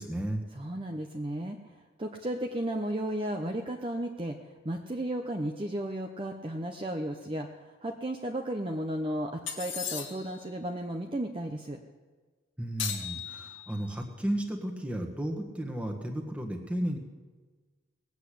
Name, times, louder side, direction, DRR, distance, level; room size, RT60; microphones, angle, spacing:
voice 1, 0.0-0.5 12.6-17.0, right 1 dB, 5° right, 2 dB, 1.6 m, -33 dB
voice 2, 0.5-11.8, right 1 dB, 25° right, 3 dB, 0.8 m, -34 dB
sound 1, 9.5-10.4 12.8-13.9, left 8 dB, 80° left, 2.0 m, -37 dB
19.5 x 8.2 x 8.4 m, 1.4 s
head